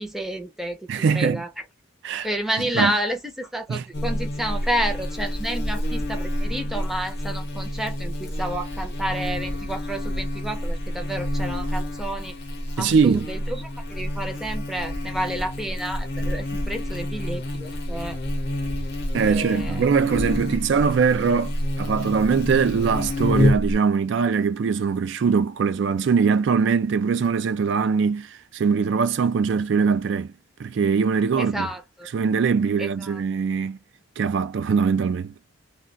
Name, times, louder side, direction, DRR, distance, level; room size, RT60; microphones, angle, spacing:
voice 1, 0.0-0.9 1.1-1.5 2.2-12.3 12.8-18.2 19.3-19.9 31.3-32.1 32.8-33.2, right 1 dB, ahead, 0.5 m, -30 dB
voice 2, 0.9-1.4 2.0-2.3 2.7-2.9 3.7-3.8 12.8-13.3 19.1-30.3 30.6-31.7 32.1-33.8 34.2-35.3, right 5 dB, 60° right, 0.3 m, -22 dB
Buzz, 3.9-23.7, left 1 dB, 50° left, 0.7 m, -28 dB
2.3 x 2.3 x 3.8 m
head